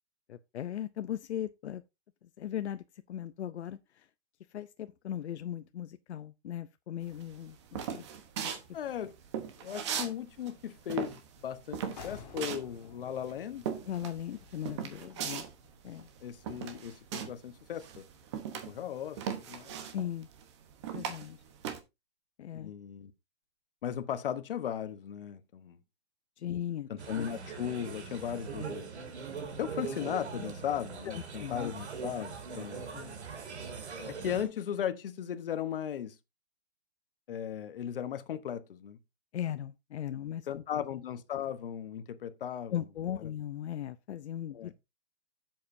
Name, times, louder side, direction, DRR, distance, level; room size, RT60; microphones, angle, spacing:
voice 1, 0.3-1.8 2.2-4.1 4.5-8.1 8.4-8.6 13.8-15.4 15.8-16.1 19.9-20.3 20.9-21.4 22.4-22.7 26.4-26.9 27.1-27.3 31.0-31.7 32.9-33.2 39.3-40.6 42.7-44.8, left 10 dB, 80° left, 0.7 m, -38 dB
sound 1, 7.1-10.1 10.4-17.5 17.8-21.8, right 8 dB, 25° right, 1.0 m, -38 dB
voice 2, 8.7-9.1 9.6-13.6 16.2-18.0 18.5-19.7 22.5-23.1 23.8-25.8 26.9-28.9 29.6-32.8 34.0-36.2 37.3-39.0 40.5-42.7 44.5-44.7, left 9 dB, 55° left, 1.1 m, -37 dB
sound 2, 12.0-17.5, left 6 dB, 35° left, 1.9 m, -53 dB
sound 3, 27.0-34.4, right 5 dB, 80° right, 2.8 m, -41 dB
11.5 x 7.6 x 2.7 m
hypercardioid pair, 170°, 33 cm